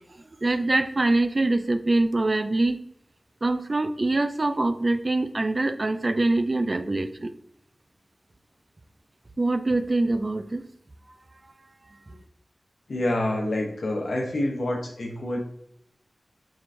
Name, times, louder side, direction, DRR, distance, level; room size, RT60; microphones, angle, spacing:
voice 1, 0.4-2.8 3.4-7.3 9.4-10.6, right 2 dB, 45° right, 10 dB, 0.3 m, -24 dB
voice 2, 12.9-15.4, left 1 dB, 80° left, 0 dB, 0.8 m, -27 dB
4.6 x 3.2 x 2.6 m, 0.74 s
cardioid pair, 45°, 0 cm